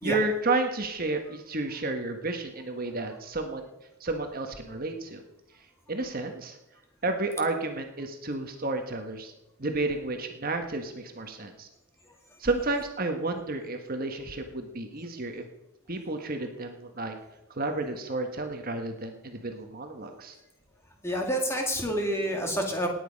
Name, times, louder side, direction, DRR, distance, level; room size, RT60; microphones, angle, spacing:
voice 1, 0.0-3.7 4.0-5.2 5.9-6.6 7.0-9.3 9.6-11.7 12.4-15.4 15.9-17.1 17.5-20.4, right 2 dB, 40° right, 5 dB, 1.3 m, -31 dB
voice 2, 21.0-22.9, equal, 10° left, 2 dB, 2.2 m, -28 dB
18.0 x 9.4 x 5.2 m, 0.95 s
head